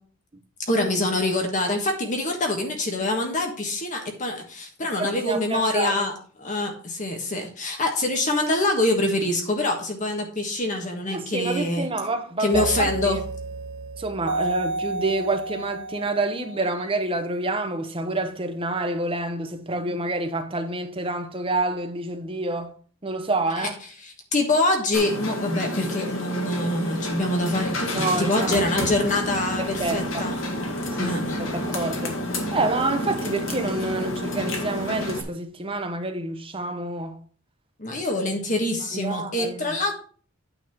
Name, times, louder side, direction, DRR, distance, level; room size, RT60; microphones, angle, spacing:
voice 1, 0.7-6.1 6.4-11.9 12.4-13.2 23.6-23.7 24.0-30.4 31.0-31.4 37.8-39.9, left 2 dB, 40° left, 1.4 m, -25 dB
voice 2, 5.0-6.0 11.1-13.2 14.0-22.7 23.0-23.7 27.9-28.6 29.6-30.3 30.9-32.2 32.5-37.1 38.9-39.7, right 2 dB, 25° right, 0.9 m, -28 dB
sound 1, 12.5-17.2, right 3 dB, 55° right, 0.5 m, -31 dB
sound 2, 24.9-35.2, left 1 dB, 70° left, 1.8 m, -29 dB
9.0 x 4.2 x 5.9 m
head